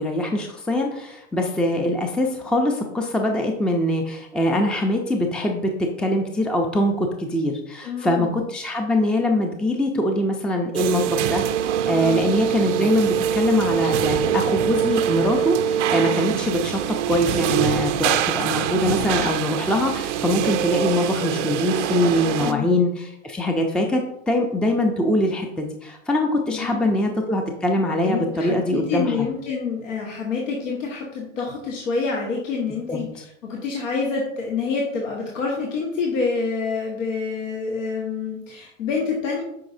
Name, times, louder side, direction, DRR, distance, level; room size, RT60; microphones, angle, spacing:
voice 1, 0.0-5.7 6.0-16.8 17.1-29.3 32.9-33.0, left 1 dB, ahead, 3 dB, 0.6 m, -23 dB
voice 2, 7.8-8.4 12.0-12.3 22.4-22.8 26.5-27.1 28.0-33.1 33.4-39.4, left 4 dB, 70° left, -2 dB, 1.7 m, -27 dB
sound 1, 10.7-22.5, right 9 dB, 65° right, 0.7 m, -24 dB
8.4 x 5.3 x 2.7 m, 0.79 s
hypercardioid pair, 100°, 39 cm